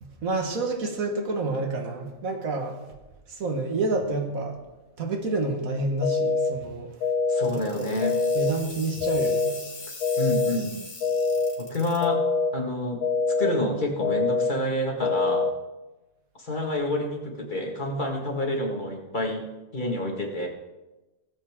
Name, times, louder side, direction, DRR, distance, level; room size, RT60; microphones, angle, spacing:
voice 1, 0.0-2.8 3.3-4.6 5.0-7.0 7.5-9.6, right 3 dB, 80° right, 4 dB, 1.9 m, -29 dB
sound 1, 6.0-6.5 7.0-7.5 8.0-8.5 9.0-9.5 10.0-10.5 11.0-11.5 12.0-12.5 13.0-13.5 14.0-14.5 15.0-15.5, left 4 dB, 90° left, 1.3 m, -24 dB
voice 2, 7.3-8.1 10.2-10.7 11.6-12.2 12.5-13.0 13.4-15.4 16.4-19.5 19.7-20.5, left 1 dB, 35° left, 0 dB, 2.0 m, -28 dB
sound 2, 7.4-12.0, left 3 dB, 70° left, 2.7 m, -42 dB
18.0 x 7.9 x 3.6 m, 1.1 s
omnidirectional pair, 1.4 m